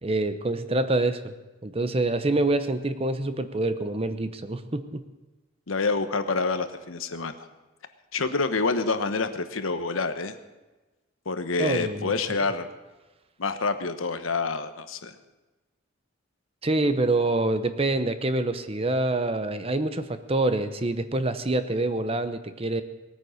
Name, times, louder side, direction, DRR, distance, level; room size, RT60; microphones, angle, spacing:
voice 1, 0.0-1.3 1.6-5.0 11.6-12.4 16.6-22.8, right 2 dB, 30° right, 10 dB, 0.8 m, -26 dB
voice 2, 5.7-7.5 8.1-10.4 11.2-12.7 13.4-15.1, left 4 dB, 85° left, 9 dB, 1.1 m, -27 dB
19.5 x 9.2 x 6.5 m, 1.1 s
head